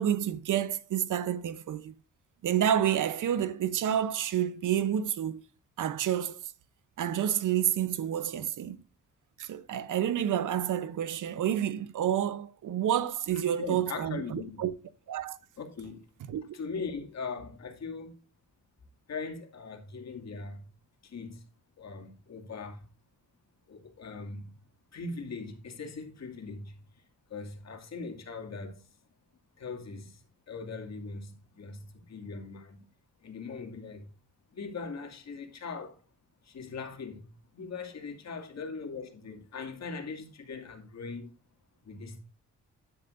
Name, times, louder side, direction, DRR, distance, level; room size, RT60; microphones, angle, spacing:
voice 1, 0.0-1.9 2.4-5.4 5.8-6.4 7.0-8.8 9.4-14.7 15.1-15.4 16.3-16.4, right 10 dB, 80° right, 0.9 m, -29 dB
voice 2, 13.6-14.7 15.6-16.0 16.5-18.1 19.1-20.7 21.0-21.4 21.8-22.8 23.7-24.5 24.9-26.8 27.3-28.8 29.6-30.2 30.5-32.9 33.2-34.1 34.5-36.0 36.4-41.3 41.8-42.2, left 4 dB, 60° left, 2.4 m, -40 dB
11.0 x 10.5 x 2.6 m
cardioid pair, 100°, 30 cm